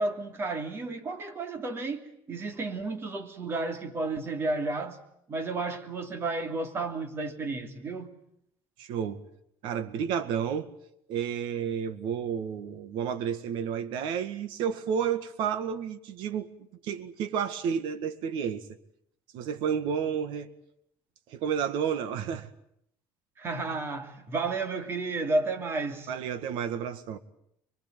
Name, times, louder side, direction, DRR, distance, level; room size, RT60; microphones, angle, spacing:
voice 1, 0.0-5.0 5.3-8.1 23.4-26.1, right 3 dB, 30° right, 2.9 m, -32 dB
voice 2, 8.8-9.2 9.6-10.7 11.1-16.5 16.8-18.7 19.3-20.5 21.3-22.5 26.1-27.2, right 7 dB, 75° right, 1.9 m, -31 dB
23.5 x 23.0 x 9.3 m
cardioid pair, 165°, 8 cm